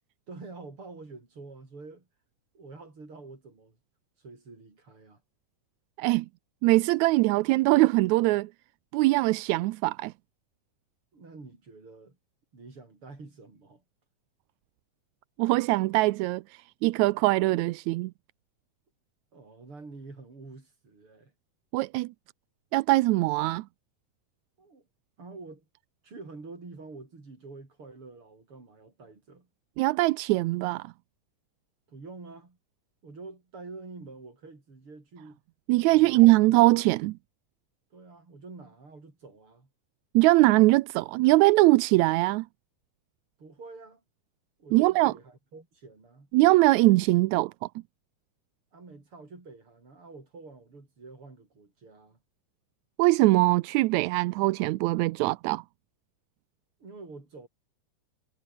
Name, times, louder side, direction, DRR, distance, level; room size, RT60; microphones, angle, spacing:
voice 1, 0.3-2.1 2.5-3.8 4.2-5.2 11.1-12.2 12.5-13.8 19.3-21.3 24.6-24.9 25.2-25.7 26.0-29.5 31.9-32.6 33.0-35.4 35.9-36.6 37.9-39.7 43.4-44.0 44.6-46.3 48.7-52.2 56.8-57.5, right 3 dB, 40° right, 6.5 m, -47 dB
voice 2, 6.6-8.5 8.9-10.1 15.4-16.4 16.8-18.1 21.7-22.1 22.7-23.6 29.8-30.9 35.7-37.1 40.1-42.4 44.7-45.1 46.3-47.5 53.0-55.6, right 20 dB, 80° right, 1.8 m, -22 dB
omnidirectional pair, 3.6 m